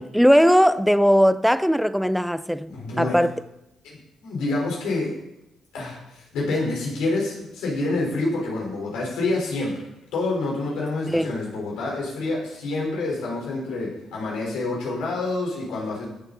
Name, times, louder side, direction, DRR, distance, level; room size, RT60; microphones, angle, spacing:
voice 1, 0.0-2.7 3.0-3.4 11.1-11.4, equal, ahead, 0.4 m, -19 dB
voice 2, 2.7-3.3 3.8-5.2 5.7-9.8 10.1-16.1, left 2 dB, 90° left, 4.0 m, -27 dB
14.5 x 7.0 x 4.0 m
cardioid pair, 90°, 0 cm